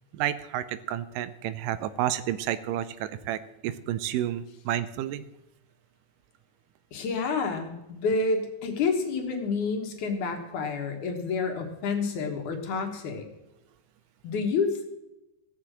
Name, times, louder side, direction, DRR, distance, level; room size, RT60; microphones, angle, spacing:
voice 1, 0.1-5.2, right 12 dB, 80° right, 14 dB, 2.1 m, -30 dB
voice 2, 6.9-13.3 14.2-14.8, left 4 dB, 65° left, 4 dB, 2.8 m, -29 dB
15.5 x 6.6 x 7.5 m, 0.94 s
omnidirectional pair, 3.9 m